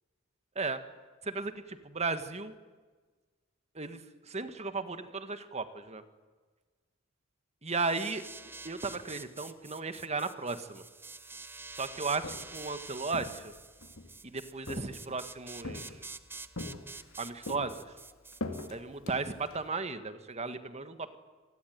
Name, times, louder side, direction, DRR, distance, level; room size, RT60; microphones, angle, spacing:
voice 1, 1.2-2.5 3.7-6.0 7.6-8.2 8.6-10.8 11.7-13.5 14.2-16.0 17.2-17.9 18.7-21.2, right 4 dB, 30° right, 10 dB, 1.6 m, -35 dB
sound 1, 7.7-18.7, right 3 dB, 10° right, 0.7 m, -47 dB
Walk footsteps, 12.0-12.6 13.1-14.1 14.7-15.2 15.6-16.2 16.6-17.2 17.5-19.7, left 2 dB, 85° left, 2.6 m, -42 dB
27.0 x 19.5 x 9.3 m, 1.4 s
head